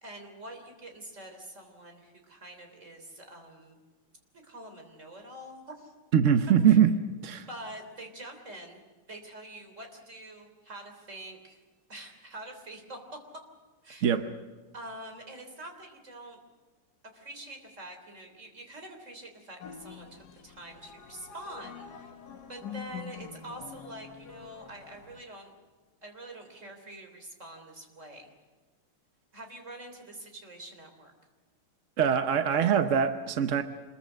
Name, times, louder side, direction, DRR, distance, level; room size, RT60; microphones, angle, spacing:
voice 1, 0.0-3.8 4.3-5.9 6.7-6.8 7.3-8.8 9.1-11.6 11.9-13.0 13.8-14.1 14.7-16.4 17.1-22.1 22.5-25.5 26.0-28.3 29.3-31.1, right 1 dB, 35° right, 5 dB, 3.8 m, -45 dB
voice 2, 6.1-6.9 7.2-7.5 14.0-14.3 32.0-33.6, right 8 dB, 55° right, 8 dB, 0.8 m, -23 dB
sound 1, 19.6-25.2, left 7 dB, 55° left, 1.6 m, -45 dB
26.5 x 21.5 x 6.5 m, 1.3 s
omnidirectional pair, 2.4 m